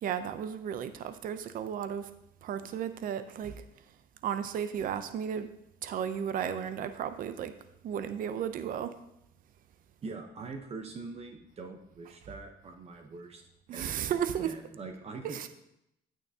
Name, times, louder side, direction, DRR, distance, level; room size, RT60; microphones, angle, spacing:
voice 1, 0.0-2.1 2.4-3.6 4.2-5.5 5.8-7.5 7.8-8.9 13.7-14.5 15.3-15.5, right 8 dB, 55° right, 11 dB, 0.6 m, -34 dB
voice 2, 10.0-13.4 13.7-15.5, right 3 dB, 35° right, 4 dB, 0.9 m, -43 dB
9.1 x 8.8 x 2.8 m, 0.82 s
cardioid pair, 110°, 17 cm